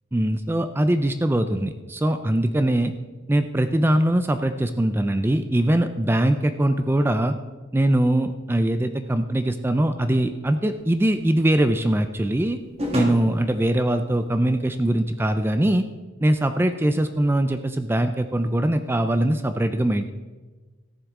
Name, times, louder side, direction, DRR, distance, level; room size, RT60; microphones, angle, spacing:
voice 1, 0.1-2.9 3.3-7.4 7.7-12.6 12.9-15.8 16.2-20.1, right 1 dB, 10° right, 9 dB, 0.4 m, -22 dB
sound 1, 10.7-15.5, equal, 30° right, 1.6 m, -34 dB
14.5 x 10.0 x 3.7 m, 1.3 s
head